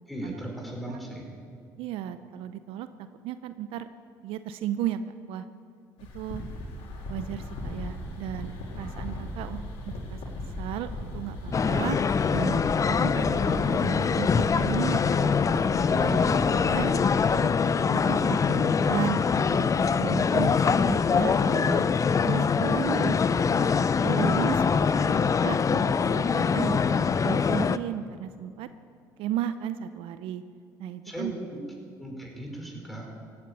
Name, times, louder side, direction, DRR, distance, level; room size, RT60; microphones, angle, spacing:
voice 1, 0.1-1.3 15.9-16.5 18.3-18.7 31.0-31.6 32.0-33.1, right 1 dB, ahead, -1 dB, 5.3 m, -37 dB
voice 2, 1.8-2.9 3.2-3.9 4.2-5.0 5.3-5.5 6.1-6.4 7.1-8.5 8.8-10.2 10.6-12.0 12.3-12.6 12.9-16.2 16.5-17.5 17.9-19.7 20.0-21.9 22.2-23.7 24.0-28.7 29.2-30.4 30.8-31.3, right 11 dB, 70° right, 12 dB, 0.6 m, -35 dB
sound 1, 6.0-17.4, left 1 dB, 70° left, 3.4 m, -37 dB
sound 2, 11.5-27.8, left 6 dB, 35° left, 0.6 m, -24 dB
16.0 x 9.6 x 8.5 m, 2.3 s
hypercardioid pair, 65°, 10 cm